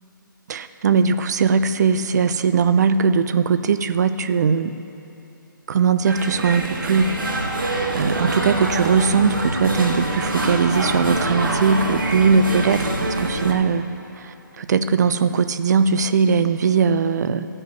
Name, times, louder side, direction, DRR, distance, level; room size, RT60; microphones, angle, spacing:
voice 1, 0.5-4.8 5.7-7.1 7.9-13.8 14.6-17.5, right 5 dB, 55° right, 11 dB, 0.6 m, -19 dB
sound 1, 6.0-13.5, right 1 dB, 90° right, 2.2 m, -25 dB
14.0 x 5.5 x 9.4 m, 2.9 s
hypercardioid pair, 150°, 11 cm